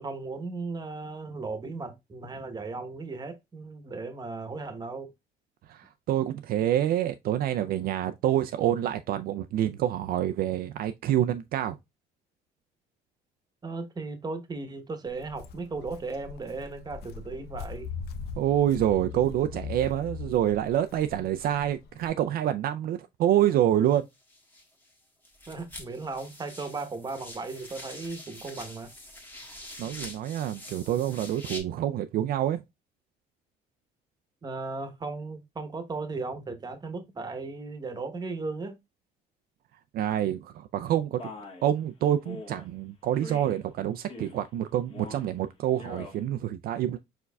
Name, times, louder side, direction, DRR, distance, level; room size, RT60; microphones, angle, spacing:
voice 1, 0.0-5.1 13.6-17.9 25.5-28.9 34.4-38.8, right 3 dB, 25° right, 1.0 m, -36 dB
voice 2, 5.7-11.8 18.4-24.1 29.8-32.6 39.9-41.2 41.6-47.0, right 11 dB, 65° right, 0.4 m, -27 dB
Walk footsteps, 15.0-22.1, left 6 dB, 70° left, 0.6 m, -41 dB
sound 1, 23.9-25.0 25.2-31.6, left 1 dB, 10° left, 1.4 m, -45 dB
Male speech man speaking, 41.2-41.7 42.3-42.7 43.2-43.6 44.0-44.5 44.9-45.3 45.7-46.2, left 3 dB, 35° left, 1.5 m, -43 dB
4.6 x 4.4 x 2.2 m
cardioid pair, 110°, 17 cm